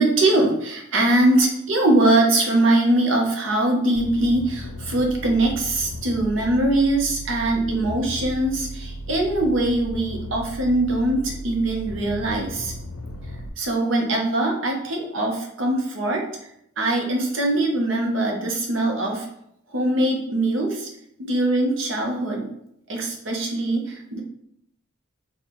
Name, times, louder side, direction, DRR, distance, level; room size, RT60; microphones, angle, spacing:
voice 1, 0.0-12.7 13.6-16.2 16.8-19.3 19.7-20.9 21.2-22.5 22.9-24.2, right 2 dB, 65° right, 1 dB, 0.8 m, -22 dB
sound 1, 4.0-13.5, equal, 90° left, 0.5 m, -35 dB
4.2 x 2.3 x 3.0 m, 0.74 s
head